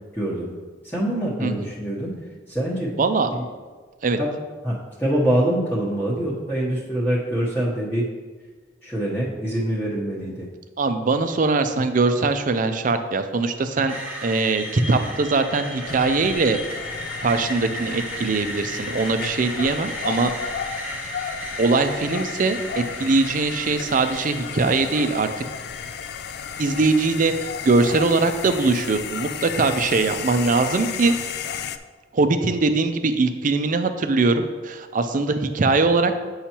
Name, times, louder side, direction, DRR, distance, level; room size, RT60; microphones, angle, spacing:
voice 1, 0.1-0.5 0.8-2.2 2.5-3.0 4.2-4.3 4.6-8.1 8.8-10.4, right 1 dB, 10° left, -8 dB, 1.0 m, -24 dB
voice 2, 3.0-3.3 4.0-4.2 10.8-13.9 14.2-16.6 17.2-20.3 21.6-25.3 26.6-31.2 32.1-36.2, right 3 dB, 45° right, 9 dB, 0.5 m, -21 dB
Screech, 13.9-27.8, right 1 dB, 10° right, 1.1 m, -37 dB
sound 1, 15.9-31.8, left 7 dB, 60° left, 0.3 m, -33 dB
8.5 x 5.6 x 2.9 m, 1.4 s
head